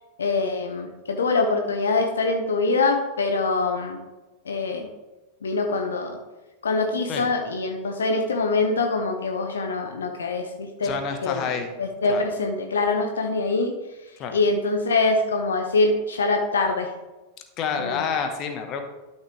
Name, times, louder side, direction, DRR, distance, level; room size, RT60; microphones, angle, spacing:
voice 1, 0.2-4.0 4.4-4.9 5.4-6.2 6.6-11.0 11.2-11.5 11.8-13.8 14.3-16.9 17.8-18.1, left 3 dB, 70° left, 4 dB, 0.9 m, -24 dB
voice 2, 10.8-11.7 12.1-12.2 14.2-14.3 17.6-18.8, left 6 dB, 35° left, 6 dB, 1.3 m, -28 dB
12.0 x 6.3 x 3.3 m, 1.1 s
figure-of-eight pair, 90°, 0 cm